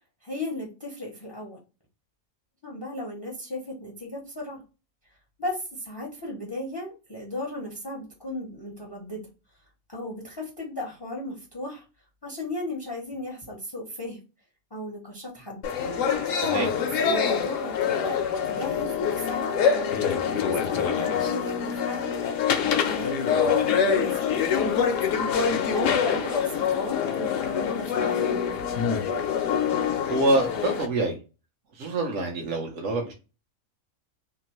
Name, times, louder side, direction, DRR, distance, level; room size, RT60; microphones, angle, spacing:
voice 1, 0.2-1.6 2.6-4.6 5.4-9.3 9.9-11.8 12.2-14.2 14.7-15.6 16.5-18.2 18.4-19.9 20.2-25.2 25.6-28.4, left 1 dB, 25° left, -1 dB, 0.5 m, -35 dB
sound 1, 15.6-30.9, left 7 dB, 70° left, 0.9 m, -25 dB
voice 2, 30.1-31.2 31.7-33.1, right 2 dB, 65° right, 0 dB, 0.9 m, -26 dB
3.0 x 2.4 x 2.9 m, 0.32 s
omnidirectional pair, 1.5 m